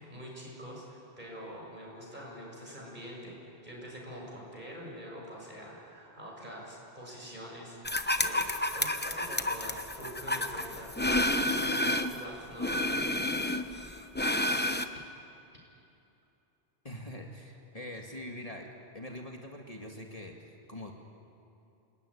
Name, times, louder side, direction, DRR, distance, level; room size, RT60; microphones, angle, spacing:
voice 1, 0.0-3.4 3.6-8.4 8.7-13.1, equal, 45° right, -2 dB, 7.1 m, -45 dB
sound 1, 7.8-12.2 12.6-14.8, left 1 dB, 10° left, 0.9 m, -30 dB
voice 2, 16.8-18.7 18.9-21.1, left 1 dB, 35° left, 1 dB, 2.0 m, -43 dB
28.5 x 19.5 x 9.8 m, 2.8 s
omnidirectional pair, 1.1 m